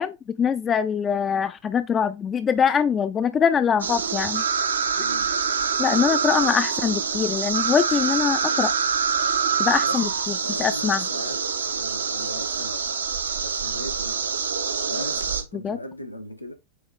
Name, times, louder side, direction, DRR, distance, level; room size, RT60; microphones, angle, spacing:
voice 1, 0.0-4.4 5.8-8.7 9.6-10.1 10.6-11.0 15.6-15.8, left 7 dB, 25° left, 0.4 m, -23 dB
sound 1, 3.8-15.4, right 6 dB, 70° right, 0.8 m, -25 dB
voice 2, 4.9-5.3 9.8-14.3 14.9-16.5, left 1 dB, 90° left, 1.0 m, -39 dB
8.2 x 3.1 x 3.8 m
figure-of-eight pair, 90°, 0 cm